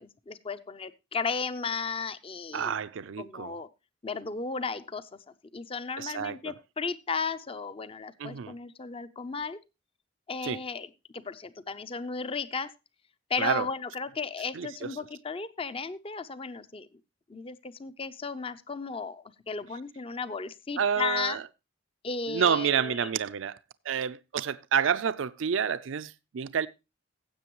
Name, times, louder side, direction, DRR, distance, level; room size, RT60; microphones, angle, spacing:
voice 1, 0.0-2.7 3.2-3.7 4.0-5.1 5.5-9.6 10.3-12.7 13.3-16.9 17.3-21.4 22.0-23.1, left 4 dB, 30° left, 0.5 m, -35 dB
voice 2, 2.5-3.5 6.0-6.5 8.2-8.5 10.4-10.6 13.4-13.7 14.5-14.9 20.8-21.4 22.3-23.6 23.9-26.7, right 7 dB, 70° right, 0.5 m, -29 dB
15.5 x 7.8 x 3.0 m
head